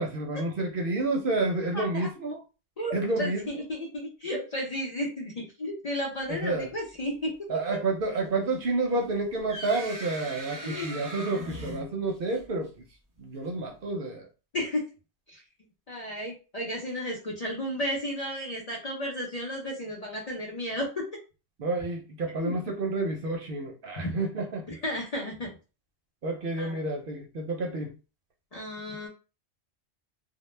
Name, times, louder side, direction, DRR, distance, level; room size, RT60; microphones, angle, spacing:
voice 1, 0.0-2.4 2.9-3.5 6.3-6.7 7.5-12.8 13.2-14.3 21.6-24.7 26.2-27.9, right 2 dB, 60° right, 0.7 m, -30 dB
voice 2, 1.7-2.1 2.8-7.3 7.7-7.8 10.6-10.9 14.5-14.8 15.3-15.4 15.9-21.1 22.4-22.5 24.0-24.1 24.7-25.5 26.6-26.8 28.5-29.1, equal, 40° left, 0.6 m, -33 dB
sound 1, 9.0-12.6, equal, 25° right, 0.5 m, -40 dB
2.1 x 2.1 x 3.1 m
omnidirectional pair, 1.1 m